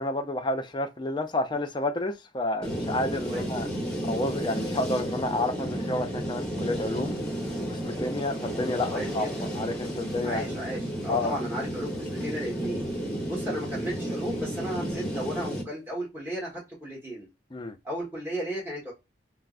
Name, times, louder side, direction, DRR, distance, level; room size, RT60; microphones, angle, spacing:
voice 1, 0.0-3.7 4.0-7.1 7.7-9.3 9.5-10.4 11.1-11.3 17.5-17.8, left 2 dB, 25° left, 0.4 m, -30 dB
sound 1, 2.6-15.6, right 1 dB, 5° left, 0.9 m, -32 dB
voice 2, 3.3-3.6 8.9-9.5 10.2-12.9 13.3-17.3 17.8-18.9, equal, 10° right, 1.2 m, -35 dB
4.3 x 2.0 x 2.4 m
head